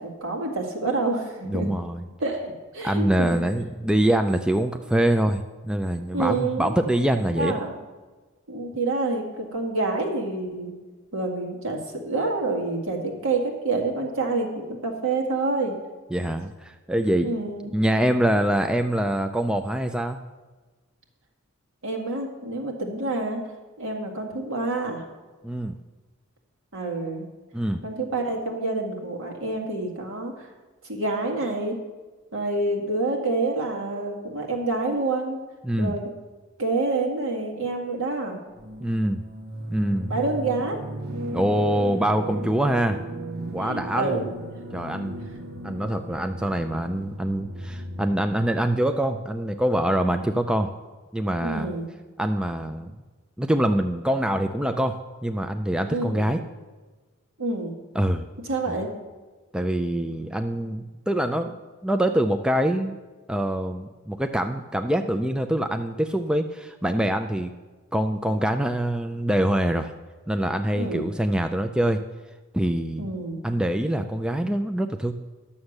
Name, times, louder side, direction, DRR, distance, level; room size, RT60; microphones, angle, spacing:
voice 1, 0.0-1.7 2.2-3.4 6.1-6.7 7.3-7.7 8.5-10.7 11.1-15.8 17.2-17.7 21.8-23.4 23.8-25.0 26.7-27.3 27.8-30.3 30.8-31.8 32.3-35.4 35.8-36.1 36.6-38.4 40.1-40.8 43.6-44.3 51.4-51.9 55.9-56.3 57.4-57.7 58.4-58.9 70.7-71.1 73.0-73.4, right 3 dB, 65° right, 1 dB, 2.0 m, -27 dB
voice 2, 1.4-2.1 2.8-7.6 16.1-17.3 17.7-20.2 25.4-25.7 27.5-27.8 35.6-36.0 38.8-39.2 39.7-40.1 41.3-43.0 43.5-44.2 44.7-45.2 45.6-50.7 51.1-51.7 52.2-52.9 53.4-56.4 57.9-58.2 58.7-58.8 59.5-61.5 61.8-63.0 63.3-67.5 67.9-69.9 70.3-72.0 72.5-73.1 73.4-75.1, right 1 dB, 5° right, 6 dB, 0.4 m, -24 dB
sound 1, 38.5-48.5, right 2 dB, 50° right, 1.4 m, -36 dB
11.5 x 7.1 x 6.5 m, 1.3 s
head